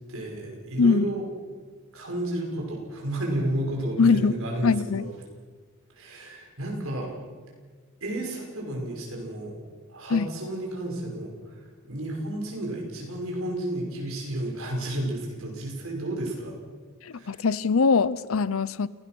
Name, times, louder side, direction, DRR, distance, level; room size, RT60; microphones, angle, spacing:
voice 1, 0.1-1.2 1.9-5.1 5.9-7.1 8.0-9.6 9.9-16.6 17.1-17.4, right 1 dB, 65° right, 0 dB, 5.8 m, -32 dB
voice 2, 0.8-1.1 4.0-4.4 4.6-5.1 10.1-10.3 17.0-18.9, left 5 dB, 65° left, 19 dB, 0.6 m, -22 dB
29.0 x 17.5 x 6.1 m, 1.5 s
head